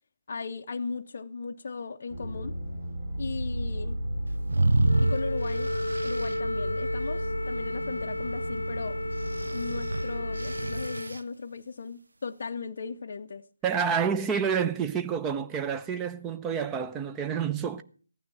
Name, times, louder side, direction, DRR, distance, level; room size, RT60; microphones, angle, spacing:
voice 1, 0.3-2.6 3.2-4.0 5.0-5.7 6.0-9.0 9.5-13.5, left 4 dB, 45° left, 0.5 m, -37 dB
sound 1, 2.1-10.8, equal, 50° right, 5.2 m, -34 dB
sound 2, 4.5-6.4 9.2-11.2, right 2 dB, 65° right, 0.7 m, -28 dB
Wind instrument woodwind instrument, 4.8-11.1, left 1 dB, 80° left, 0.8 m, -34 dB
voice 2, 13.6-17.8, right 7 dB, 10° right, 0.6 m, -28 dB
15.0 x 9.5 x 5.5 m
figure-of-eight pair, 150°, 0 cm